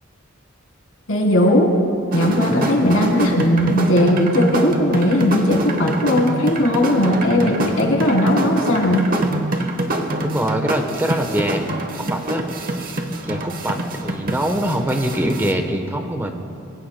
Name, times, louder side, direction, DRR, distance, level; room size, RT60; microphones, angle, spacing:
voice 1, 1.1-1.7 2.1-9.1, left 1 dB, 85° left, -1 dB, 3.1 m, -17 dB
sound 1, 2.1-15.5, right 1 dB, 45° right, 1.0 m, -26 dB
voice 2, 10.2-11.7 12.0-12.4 12.8-16.3, right 1 dB, 10° right, 4 dB, 1.0 m, -23 dB
25.5 x 21.5 x 2.2 m, 2.6 s
head